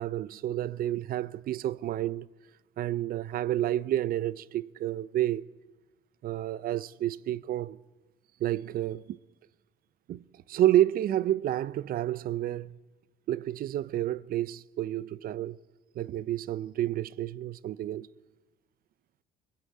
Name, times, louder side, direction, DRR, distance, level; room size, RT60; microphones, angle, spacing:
voice 1, 0.0-2.3 2.8-5.4 6.2-7.8 8.4-9.2 10.1-10.2 10.5-12.7 13.3-15.6 16.0-18.1, right 13 dB, 60° right, 0.6 m, -29 dB
22.5 x 17.5 x 8.6 m
cardioid pair, 110°, 17 cm